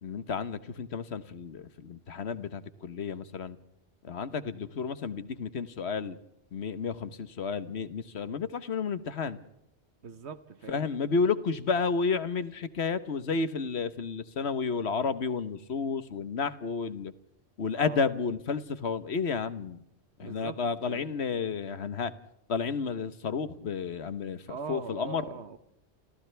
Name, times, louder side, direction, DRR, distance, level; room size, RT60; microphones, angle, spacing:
voice 1, 0.0-3.6 4.0-6.2 6.5-9.4 10.7-17.1 17.6-19.8 20.2-22.1 22.5-25.2, left 5 dB, 75° left, 13 dB, 1.4 m, -31 dB
voice 2, 10.0-10.9 17.7-18.1 20.2-20.6 20.9-21.1 24.5-25.6, right 5 dB, 85° right, 11 dB, 1.4 m, -41 dB
29.5 x 29.0 x 3.4 m, 0.81 s
omnidirectional pair, 1.1 m